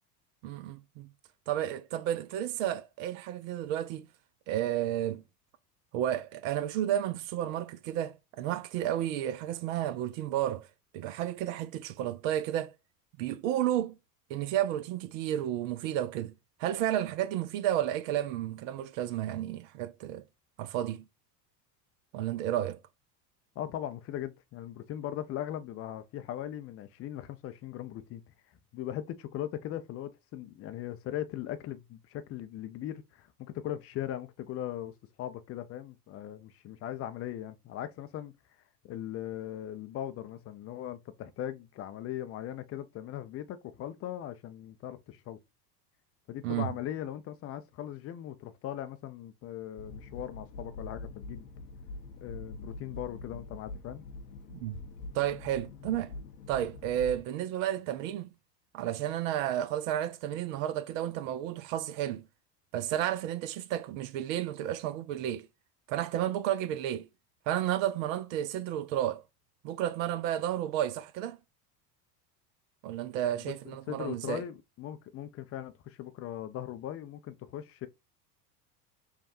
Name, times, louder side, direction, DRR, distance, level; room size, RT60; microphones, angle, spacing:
voice 1, 0.4-1.1 1.5-4.1 4.5-5.2 5.9-10.7 10.9-12.7 13.2-14.0 14.3-16.3 16.6-20.2 20.6-21.1 22.1-22.8 46.4-46.8 54.5-54.8 55.1-56.2 56.5-58.3 58.7-62.3 62.7-65.5 65.9-67.1 67.5-69.2 69.6-71.4 72.8-74.4, right 11 dB, 55° right, 0.6 m, -32 dB
voice 2, 23.6-28.2 28.7-34.9 35.2-38.3 38.8-45.4 46.3-51.5 52.2-54.0 73.3-73.5 73.9-77.9, left 12 dB, 30° left, 0.5 m, -39 dB
sound 1, 49.8-57.2, left 2 dB, 65° left, 0.9 m, -44 dB
5.7 x 2.3 x 2.6 m
hypercardioid pair, 75°, 49 cm